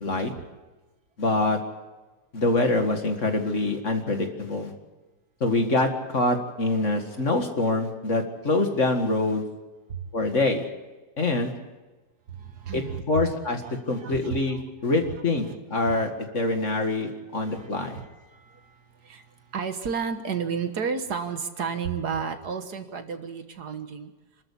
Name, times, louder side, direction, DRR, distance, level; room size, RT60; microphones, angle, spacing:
voice 1, 0.0-0.3 1.2-1.6 2.3-4.7 5.4-9.4 10.1-10.7 11.2-11.5 12.7-13.6 13.9-18.0, left 2 dB, 40° left, 5 dB, 2.2 m, -25 dB
voice 2, 12.3-13.4 13.6-14.4 15.0-15.1 15.5-15.6 15.9-16.1 16.6-16.7 17.4-24.1, right 6 dB, 60° right, 8 dB, 1.8 m, -33 dB
27.5 x 13.5 x 8.4 m, 1.2 s
omnidirectional pair, 1.9 m